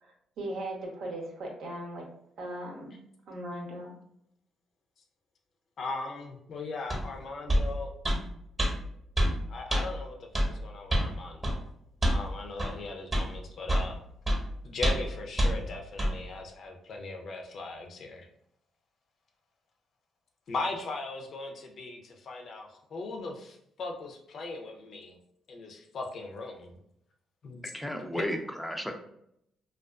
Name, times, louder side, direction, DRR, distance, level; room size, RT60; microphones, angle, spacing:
voice 1, 0.0-2.1 2.4-3.0 3.3-3.9, right 1 dB, 75° right, 0 dB, 0.7 m, -38 dB
voice 2, 5.8-7.9 9.5-11.6 12.0-14.0 14.6-18.3 20.5-25.2 25.5-26.7 27.4-27.7 28.2-28.3, left 3 dB, 60° left, 2 dB, 0.5 m, -39 dB
sound 1, 6.9-7.0 7.5-7.7 8.0-8.2 8.6-8.7 9.2-9.3 9.7-9.8 10.3-10.5 10.9-11.1 11.4-11.6 12.0-12.2 12.6-12.7 13.1-13.3 13.7-13.9 14.3-14.4 14.8-15.1 15.4-15.5 16.0-16.1, equal, 25° right, 0.8 m, -25 dB
voice 3, 27.7-28.9, equal, 5° left, 4 dB, 0.4 m, -34 dB
2.3 x 2.3 x 2.3 m, 0.73 s
cardioid pair, 90°, 0 cm